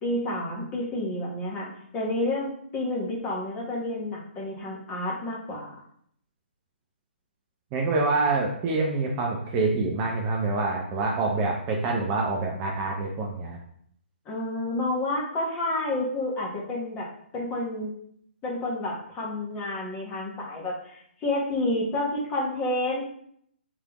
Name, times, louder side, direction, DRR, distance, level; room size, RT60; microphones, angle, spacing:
voice 1, 0.0-1.7 1.9-5.7 14.2-17.1 17.3-17.9 18.4-23.0, left 1 dB, 20° left, -3 dB, 1.2 m, -29 dB
voice 2, 7.7-13.6, right 3 dB, 25° right, 0 dB, 0.6 m, -26 dB
3.5 x 3.3 x 3.0 m, 0.67 s
figure-of-eight pair, 140°, 6 cm